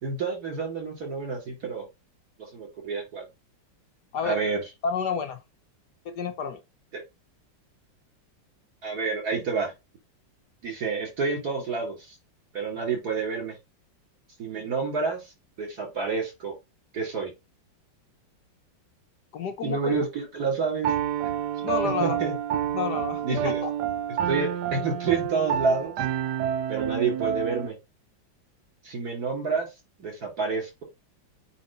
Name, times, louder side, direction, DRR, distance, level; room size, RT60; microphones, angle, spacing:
voice 1, 0.0-1.9 2.5-3.2 4.2-4.6 6.9-7.0 8.8-9.7 10.6-12.2 12.5-13.5 14.4-15.3 15.6-16.5 16.9-17.3 19.6-20.9 21.8-22.3 23.2-23.6 24.3-25.9 26.7-27.8 28.8-29.7 30.0-30.8, right 4 dB, 55° right, 4.2 m, -28 dB
voice 2, 4.8-5.4 6.0-6.6 19.3-19.9 21.6-22.2 22.7-23.7, left 6 dB, 65° left, 1.3 m, -30 dB
Piano, 20.8-27.7, right 9 dB, 70° right, 1.1 m, -28 dB
8.5 x 3.1 x 4.2 m
omnidirectional pair, 2.1 m